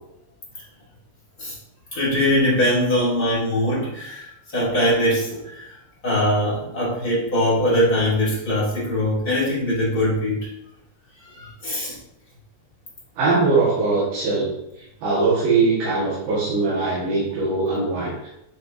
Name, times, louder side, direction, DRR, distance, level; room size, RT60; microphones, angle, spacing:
voice 1, 1.9-5.7 6.0-10.5 11.3-12.0, left 1 dB, 30° left, -7 dB, 1.9 m, -22 dB
voice 2, 13.2-14.5 15.0-18.3, right 3 dB, 80° right, -10 dB, 3.9 m, -21 dB
9.7 x 4.5 x 2.8 m, 0.84 s
omnidirectional pair, 4.7 m